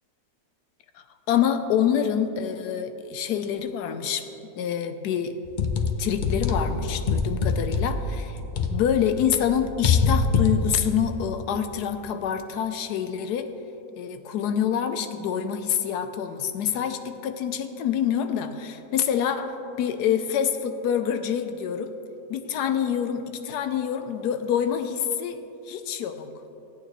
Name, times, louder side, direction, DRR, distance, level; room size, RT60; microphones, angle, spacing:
voice 1, 1.3-4.2 4.6-5.4 6.0-8.4 8.7-13.5 14.0-21.9 22.3-25.4 25.7-26.3, left 8 dB, 85° left, 8 dB, 1.2 m, -26 dB
sound 1, 5.5-9.1 9.4-11.0, left 5 dB, 70° left, 0.4 m, -24 dB
16.0 x 8.8 x 3.0 m, 3.0 s
omnidirectional pair, 1.7 m